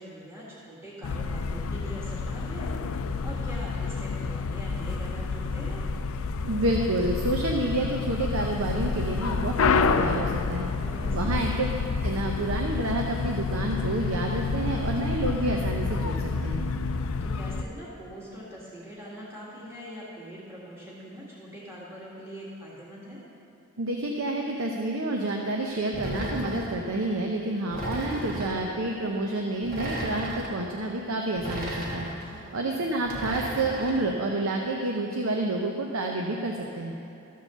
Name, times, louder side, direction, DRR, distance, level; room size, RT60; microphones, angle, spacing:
voice 1, 0.0-2.7 3.2-5.9 10.8-11.4 17.2-23.2 32.3-32.9, equal, 10° right, -8 dB, 1.9 m, -43 dB
sound 1, 1.0-17.6, left 4 dB, 70° left, 0.4 m, -29 dB
voice 2, 6.5-10.7 11.1-11.7 12.0-16.6 23.8-32.1 32.5-36.9, right 2 dB, 75° right, 1 dB, 0.7 m, -29 dB
sound 2, 25.9-26.8 27.7-28.6 29.6-30.5 31.4-32.2 33.1-34.0, right 1 dB, 40° right, 1.4 m, -34 dB
14.0 x 4.8 x 6.9 m, 2.9 s
head